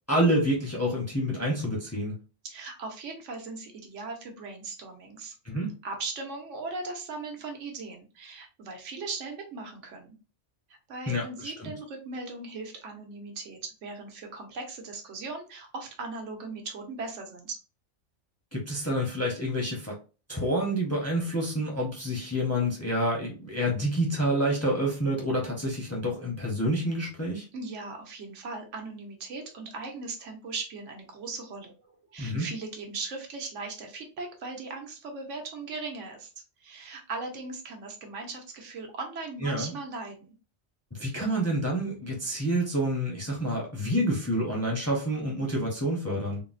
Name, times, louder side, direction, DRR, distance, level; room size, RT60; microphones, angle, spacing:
voice 1, 0.1-2.2 5.4-5.7 11.1-11.7 18.5-20.0 20.3-27.4 32.2-32.5 39.4-39.7 40.9-46.4, equal, 15° left, 0.6 m, -28 dB
voice 2, 2.4-5.3 5.8-10.2 10.9-17.6 27.5-31.7 32.1-36.3 36.6-40.3, right 3 dB, 85° right, 1.1 m, -38 dB
3.7 x 2.0 x 2.5 m
omnidirectional pair, 1.2 m